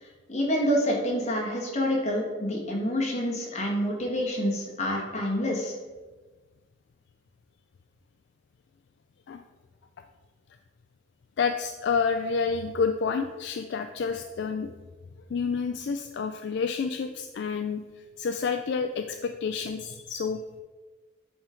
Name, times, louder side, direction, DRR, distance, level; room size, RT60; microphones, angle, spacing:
voice 1, 0.3-5.7, equal, 35° left, -2 dB, 1.5 m, -27 dB
voice 2, 11.4-14.7 15.3-17.8 18.2-20.6, left 5 dB, 60° left, 7 dB, 0.3 m, -29 dB
8.6 x 3.8 x 4.4 m, 1.3 s
head